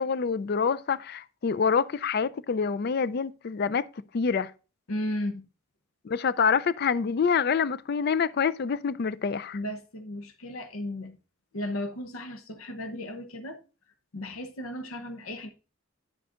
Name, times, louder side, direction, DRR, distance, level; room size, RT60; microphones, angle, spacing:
voice 1, 0.0-3.9 4.1-4.5 6.0-9.6, left 6 dB, 50° left, 0.4 m, -26 dB
voice 2, 4.9-5.5 9.5-11.2 11.5-13.6 14.1-15.5, left 1 dB, 85° left, 0.8 m, -35 dB
9.8 x 7.6 x 2.4 m
head